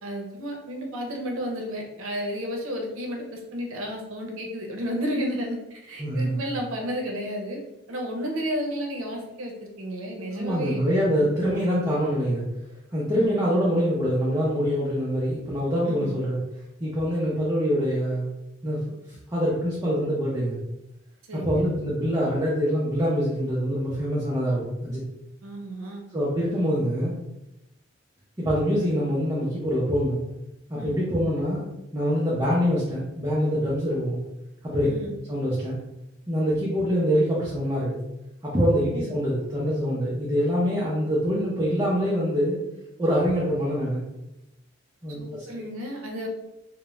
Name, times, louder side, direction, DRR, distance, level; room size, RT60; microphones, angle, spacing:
voice 1, 0.0-7.6 7.9-10.8 11.2-11.3 13.1-13.5 15.9-16.1 21.3-21.6 25.4-26.0 30.8-31.1 34.8-35.1 38.9-39.1 45.2-46.3, equal, 85° right, 2 dB, 0.6 m, -32 dB
voice 2, 6.0-6.4 10.3-12.4 12.9-16.4 16.8-18.3 18.6-18.8 19.3-20.6 21.3-25.0 26.1-27.1 28.4-30.2 30.7-31.6 31.9-34.2 34.6-34.9 35.3-35.8 36.3-38.0 38.4-42.6 43.0-44.0 45.0-45.4, equal, 15° right, -8 dB, 0.5 m, -25 dB
2.4 x 2.0 x 3.0 m, 0.91 s
head